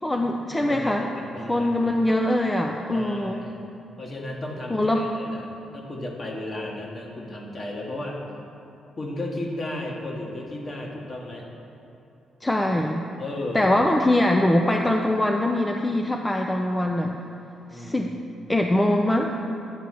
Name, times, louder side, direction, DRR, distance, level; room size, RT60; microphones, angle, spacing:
voice 1, 0.0-1.1 1.5-3.4 4.7-5.1 12.4-13.0 13.5-17.2 17.7-18.1 18.5-19.3, left 1 dB, 15° left, 2 dB, 0.5 m, -22 dB
voice 2, 0.7-2.0 2.9-3.6 4.0-8.2 9.0-11.5 13.2-14.1 17.7-18.1, left 1 dB, 45° left, -1 dB, 1.5 m, -34 dB
9.5 x 4.1 x 6.1 m, 2.8 s
supercardioid pair, 55°, 0 cm